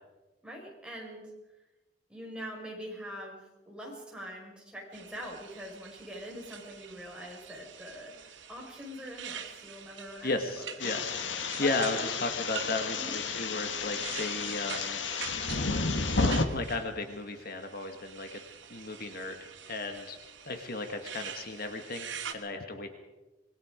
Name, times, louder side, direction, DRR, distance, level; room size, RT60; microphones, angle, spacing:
voice 1, 0.4-1.3 2.1-10.7 11.6-12.1 13.0-13.1, equal, 5° right, -2 dB, 5.8 m, -43 dB
sound 1, 4.9-22.3, right 7 dB, 80° right, 2.3 m, -46 dB
voice 2, 10.2-15.0 15.5-15.6 16.5-18.4 18.7-20.2 20.4-22.9, left 2 dB, 55° left, 6 dB, 1.7 m, -35 dB
sound 2, 10.8-16.4, left 4 dB, 75° left, 1.6 m, -32 dB
26.0 x 21.0 x 5.1 m, 1.1 s
head